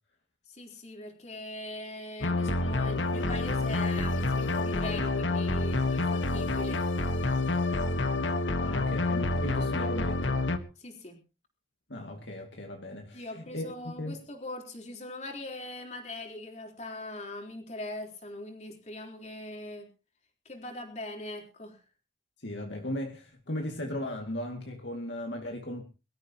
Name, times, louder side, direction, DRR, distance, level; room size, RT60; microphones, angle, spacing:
voice 1, 0.5-6.8 10.8-11.2 13.1-19.9 20.5-21.8, left 2 dB, 40° left, 3.9 m, -41 dB
sound 1, 2.2-10.6, left 2 dB, 85° left, 1.4 m, -28 dB
voice 2, 8.6-10.4 11.9-14.2 22.4-25.8, left 1 dB, 70° left, 2.2 m, -37 dB
23.5 x 13.5 x 3.0 m
head